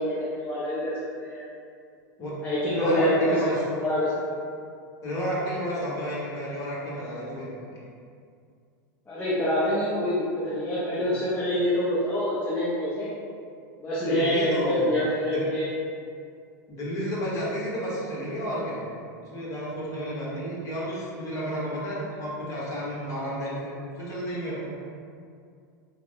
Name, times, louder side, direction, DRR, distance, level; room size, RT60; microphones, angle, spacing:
voice 1, 0.0-1.4 2.4-3.3 3.8-4.2 9.1-13.1 13.8-15.7, left 1 dB, 15° left, -10 dB, 0.7 m, -26 dB
voice 2, 2.7-3.6 5.0-7.9 10.9-11.1 14.0-15.0 15.3-15.5 16.7-18.8 19.1-24.7, equal, 30° left, -6 dB, 1.2 m, -31 dB
3.3 x 2.1 x 3.5 m, 2.3 s
hypercardioid pair, 110°, 10 cm